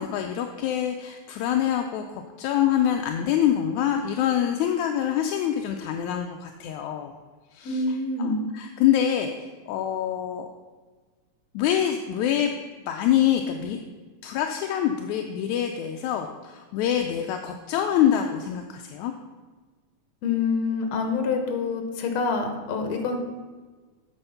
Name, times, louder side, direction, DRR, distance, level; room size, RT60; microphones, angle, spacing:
voice 1, 0.0-7.1 7.5-7.8 8.2-10.5 11.5-12.5 12.9-13.8 14.2-19.1, left 10 dB, 80° left, 4 dB, 1.9 m, -25 dB
voice 2, 7.6-8.4 20.2-23.2, left 4 dB, 65° left, 5 dB, 2.2 m, -26 dB
8.9 x 6.3 x 5.7 m, 1.4 s
omnidirectional pair, 3.6 m